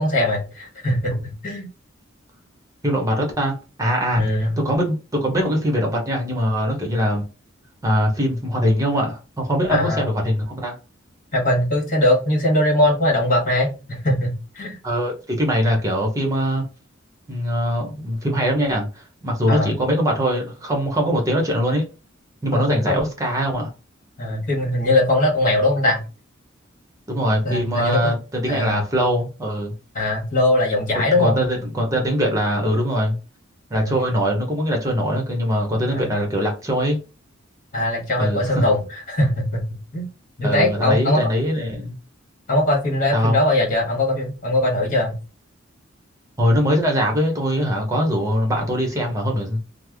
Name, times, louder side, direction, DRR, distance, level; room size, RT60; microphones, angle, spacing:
voice 1, 0.0-1.7 4.2-4.5 9.7-10.1 11.3-14.8 19.5-19.7 22.5-23.0 24.2-26.0 27.4-28.1 28.5-28.8 29.9-31.4 33.7-33.9 35.9-36.1 37.7-40.1 40.4-41.2 42.5-45.2, left 1 dB, 40° left, 1.4 m, -21 dB
voice 2, 2.8-4.2 4.6-7.2 7.8-10.7 14.8-16.6 17.3-21.8 22.4-23.7 27.1-29.7 31.1-33.2 33.7-37.0 38.2-38.6 40.4-42.0 43.1-43.4 46.4-49.6, equal, 15° right, 0.9 m, -22 dB
3.3 x 2.0 x 3.4 m
head